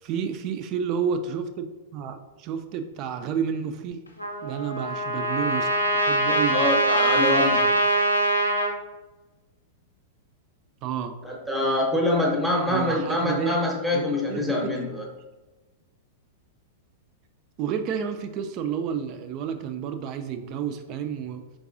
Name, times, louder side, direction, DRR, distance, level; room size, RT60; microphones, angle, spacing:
voice 1, 0.0-4.0 4.4-6.6 10.8-11.1 12.7-13.6 13.9-14.0 14.3-14.7 17.6-21.4, right 7 dB, 40° right, 9 dB, 0.4 m, -30 dB
Trumpet, 4.2-8.7, right 1 dB, 90° left, 0.6 m, -23 dB
voice 2, 6.5-7.8 11.2-15.1, left 1 dB, 5° right, -1 dB, 0.8 m, -25 dB
4.6 x 3.6 x 2.5 m, 1.2 s
figure-of-eight pair, 95°, 0 cm